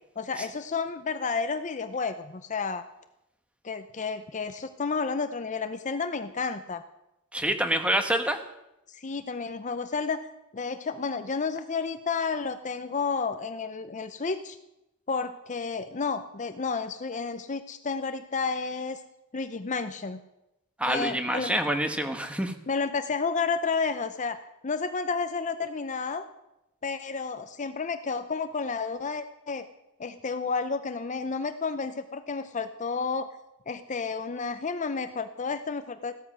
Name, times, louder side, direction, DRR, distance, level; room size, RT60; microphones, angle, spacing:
voice 1, 0.2-2.8 3.6-6.8 8.9-10.2 10.5-14.6 15.1-19.0 19.3-20.2 20.8-21.5 22.7-24.4 24.6-26.2 26.8-29.6 30.0-33.3 33.7-36.1, left 4 dB, 35° left, 10 dB, 0.6 m, -31 dB
voice 2, 7.3-8.4 20.8-22.5, right 1 dB, 5° right, 7 dB, 1.2 m, -27 dB
16.0 x 13.0 x 6.1 m, 0.90 s
head